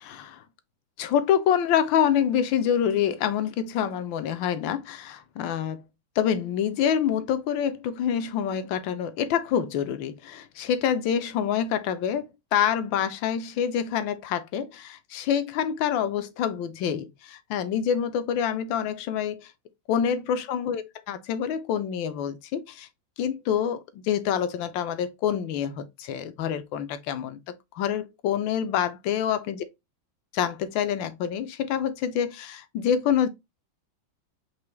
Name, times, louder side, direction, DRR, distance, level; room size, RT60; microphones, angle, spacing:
voice 1, 0.0-0.4 1.0-5.8 6.2-19.5 19.9-22.9 23.2-27.4 27.8-29.6 30.3-33.3, left 9 dB, 75° left, 1.3 m, -26 dB
4.8 x 2.9 x 3.0 m
omnidirectional pair, 2.1 m